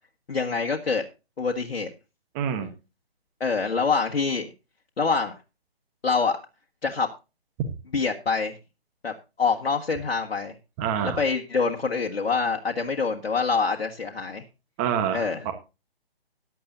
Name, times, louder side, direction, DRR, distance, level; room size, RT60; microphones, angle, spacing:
voice 1, 0.3-1.0 1.4-1.9 3.4-4.5 5.0-5.3 6.0-6.4 6.8-7.1 7.9-8.6 9.0-9.1 9.4-10.6 11.0-14.4 15.1-15.5, left 4 dB, 75° left, 1 dB, 1.8 m, -25 dB
voice 2, 2.3-2.7 10.8-11.2 14.8-15.5, right 8 dB, 15° right, 7 dB, 1.1 m, -27 dB
15.5 x 10.5 x 2.7 m, 0.28 s
hypercardioid pair, 155°, 31 cm